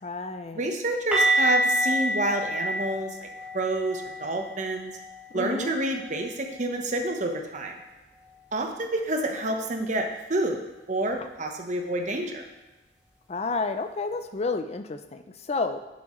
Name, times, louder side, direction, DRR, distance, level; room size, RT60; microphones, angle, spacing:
voice 1, 0.0-0.6 5.3-5.7 13.3-15.8, left 3 dB, 35° left, 8 dB, 0.5 m, -30 dB
voice 2, 0.5-3.3 3.5-4.9 5.3-7.8 8.5-12.4, right 2 dB, 45° right, 3 dB, 1.0 m, -28 dB
sound 1, 1.1-6.9 7.1-7.4 7.7-7.9 11.1-11.2, equal, 5° right, 2.2 m, -29 dB
11.0 x 7.2 x 3.1 m, 1.1 s
head